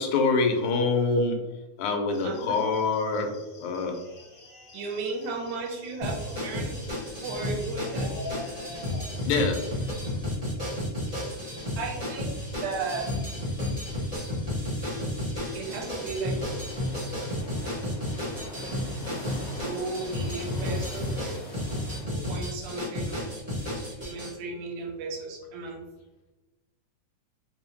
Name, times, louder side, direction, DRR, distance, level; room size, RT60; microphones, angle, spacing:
voice 1, 0.0-1.5 1.8-4.0 9.2-9.7 17.2-17.3 19.1-19.2, left 3 dB, 85° left, 3 dB, 2.0 m, -25 dB
sound 1, 2.1-9.3, left 2 dB, 55° left, 1.6 m, -46 dB
voice 2, 2.2-2.6 4.7-6.8 7.2-8.2 11.1-11.4 11.8-13.1 15.5-16.4 19.6-21.4 22.1-23.3 24.1-25.8, right 3 dB, 80° right, 2 dB, 2.0 m, -35 dB
sound 2, 6.0-24.3, left 1 dB, 45° right, 0.4 m, -32 dB
sound 3, 15.6-22.0, equal, 35° left, 1.0 m, -43 dB
5.3 x 2.1 x 2.9 m, 1.1 s
omnidirectional pair, 3.5 m